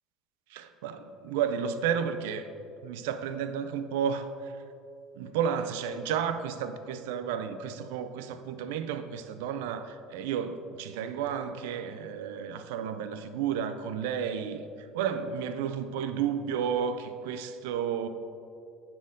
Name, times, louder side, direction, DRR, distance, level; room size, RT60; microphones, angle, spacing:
voice 1, 0.5-2.5 2.8-4.6 5.1-18.1, right 7 dB, 85° right, 0.4 m, -32 dB
9.1 x 4.2 x 3.8 m
supercardioid pair, 95°, 0 cm